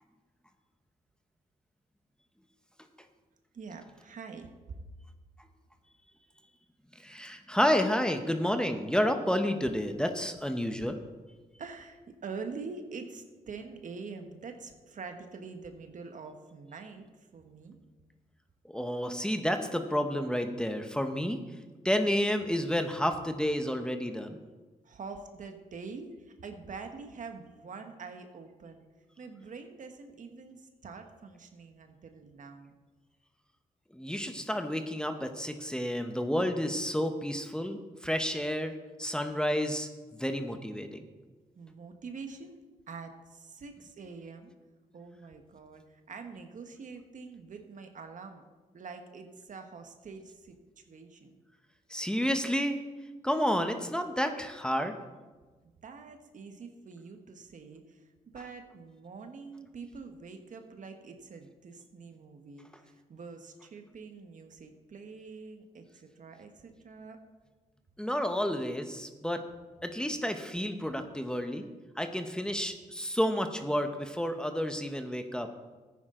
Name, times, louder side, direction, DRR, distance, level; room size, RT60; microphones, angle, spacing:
voice 1, 3.5-4.9 10.8-10.9 11.6-17.1 17.3-17.8 24.8-28.8 29.2-32.7 41.5-42.6 42.9-44.5 44.9-48.4 48.7-51.3 55.6-58.0 58.3-67.2, right 4 dB, 60° right, 6 dB, 1.4 m, -45 dB
voice 2, 7.0-11.0 18.6-21.4 21.8-24.4 33.9-39.9 40.2-41.1 51.9-52.8 53.2-54.9 68.0-69.4 69.8-71.6 72.0-75.5, equal, 5° left, 6 dB, 1.2 m, -30 dB
14.0 x 9.6 x 3.9 m, 1.3 s
cardioid pair, 60°, 15 cm